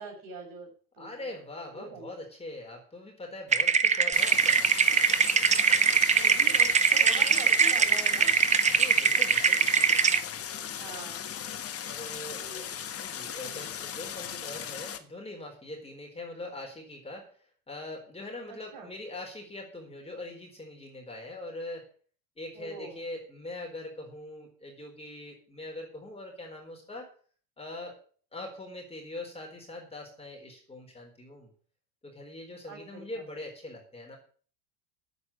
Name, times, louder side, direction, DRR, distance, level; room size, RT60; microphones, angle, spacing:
voice 1, 0.0-1.3 1.7-2.2 6.2-8.3 10.8-11.2 12.4-12.7 13.4-13.7 18.5-18.9 22.5-23.0 32.6-33.2, right 4 dB, 50° right, 2 dB, 6.2 m, -44 dB
voice 2, 1.0-4.6 8.6-9.6 11.8-17.3 17.7-21.9 22.4-27.1 27.6-28.0 28.3-31.5 32.0-34.2, left 2 dB, 10° left, 1 dB, 4.1 m, -42 dB
sound 1, 3.5-10.2, right 6 dB, 15° right, 0.7 m, -22 dB
Stream, 4.1-15.0, left 9 dB, 30° left, 1.5 m, -37 dB
9.5 x 8.3 x 8.3 m, 0.44 s
supercardioid pair, 115°, 47 cm